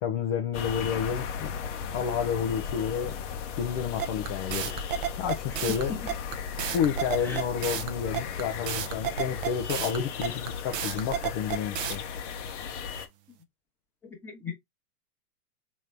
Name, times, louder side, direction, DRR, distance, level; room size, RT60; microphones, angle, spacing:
voice 1, 0.0-1.5 1.9-3.1 3.6-4.7 5.2-5.9 6.7-12.0, left 8 dB, 25° left, 0.5 m, -30 dB
sound 1, 0.5-13.1, left 7 dB, 50° left, 0.9 m, -36 dB
sound 2, 4.0-12.0, right 9 dB, 35° right, 0.6 m, -31 dB
voice 2, 14.2-14.6, left 4 dB, 5° left, 1.1 m, -37 dB
3.7 x 3.0 x 3.2 m
hypercardioid pair, 125°, 48 cm